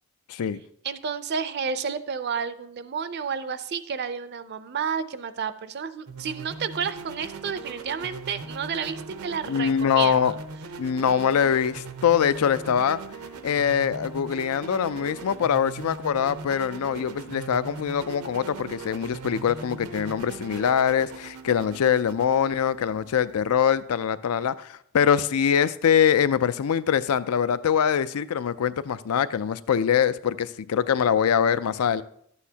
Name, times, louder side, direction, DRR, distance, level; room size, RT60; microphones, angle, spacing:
voice 1, 0.3-0.6 9.5-10.3 10.8-13.0 13.4-32.0, left 8 dB, 85° left, 0.4 m, -23 dB
voice 2, 0.8-10.3, right 6 dB, 50° right, 0.4 m, -31 dB
sound 1, 6.1-23.8, right 4 dB, 85° right, 0.7 m, -40 dB
12.0 x 8.2 x 2.8 m
head